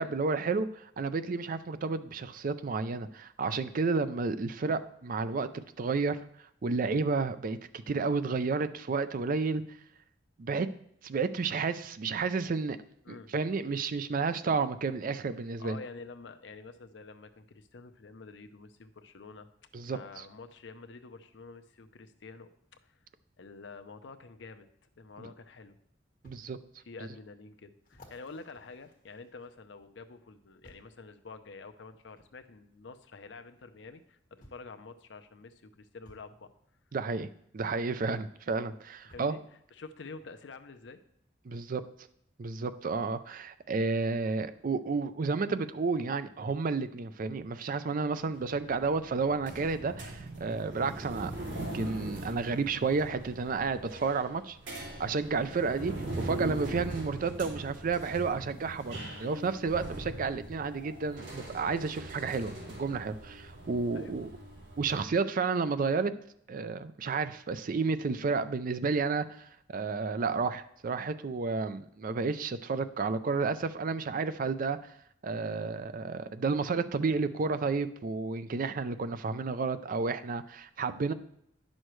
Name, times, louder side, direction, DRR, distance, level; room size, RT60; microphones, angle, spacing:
voice 1, 0.0-6.2 6.6-9.6 10.4-10.7 11.0-12.8 13.1-15.8 19.7-20.2 25.2-25.3 26.2-26.6 36.9-37.3 37.5-39.4 41.4-41.8 42.4-51.3 51.6-54.6 55.0-64.3 64.8-66.1 66.5-74.9 75.2-81.1, right 4 dB, 50° right, 12 dB, 0.4 m, -31 dB
voice 2, 15.6-19.5 19.9-23.0 23.4-24.7 25.0-25.8 26.9-36.5 39.0-39.4 39.7-41.0 41.5-41.6 63.9-64.1, left 4 dB, 70° left, 8 dB, 0.6 m, -48 dB
sound 1, 26.2-26.4 27.0-27.1 27.8-29.7 30.6-31.0 32.2-32.3 33.6-33.7 34.4-34.7 36.0-36.3 37.9-38.0 39.1-39.4 40.2-40.3, left 1 dB, 50° left, 1.5 m, -57 dB
sound 2, 48.3-65.0, right 1 dB, 75° right, 2.6 m, -41 dB
9.9 x 6.3 x 3.1 m, 0.72 s
head